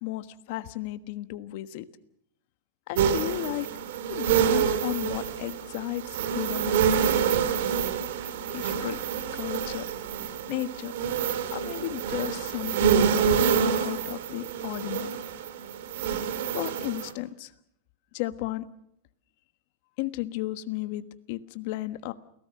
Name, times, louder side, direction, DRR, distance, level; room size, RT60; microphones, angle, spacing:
voice 1, 0.0-1.8 2.9-3.7 4.1-6.8 8.5-9.0 9.3-9.8 10.5-10.9 11.5-15.2 16.5-17.5 18.1-18.6 20.0-21.0 21.3-22.1, left 16 dB, 50° left, 12 dB, 1.3 m, -34 dB
sound 1, 3.0-17.1, right 7 dB, 70° right, 2.4 m, -27 dB
29.0 x 18.0 x 6.5 m, 0.73 s
supercardioid pair, 155°, 0 cm